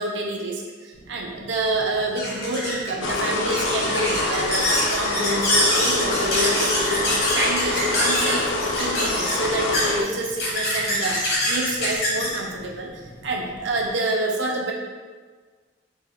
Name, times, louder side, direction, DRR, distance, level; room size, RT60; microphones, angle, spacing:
voice 1, 0.0-14.7, right 2 dB, 75° right, 0 dB, 0.6 m, -28 dB
sound 1, 1.0-13.9, left 1 dB, 55° left, 1.0 m, -25 dB
sound 2, 3.0-10.0, left 2 dB, 85° left, 0.4 m, -26 dB
4.3 x 2.2 x 3.5 m, 1.5 s
head